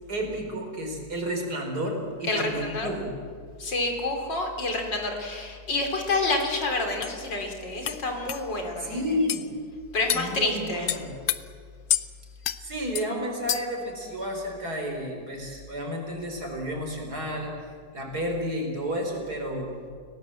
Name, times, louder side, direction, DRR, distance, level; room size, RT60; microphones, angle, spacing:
voice 1, 0.1-3.1 8.8-9.5 10.1-11.1 12.6-17.5 17.9-19.7, equal, 60° right, 2 dB, 4.9 m, -31 dB
voice 2, 2.2-2.9 3.6-9.0 9.9-10.9, left 2 dB, 80° left, 3 dB, 4.0 m, -28 dB
sound 1, 6.4-6.5 7.0-7.2 7.9-8.0 8.3-8.4 9.3-9.5 10.1-10.3 10.9-11.4 11.9-12.1 12.4-12.6 13.0-13.1 13.5-13.8, left 11 dB, 60° left, 1.2 m, -28 dB
30.0 x 18.0 x 7.8 m, 2.1 s
omnidirectional pair, 1.9 m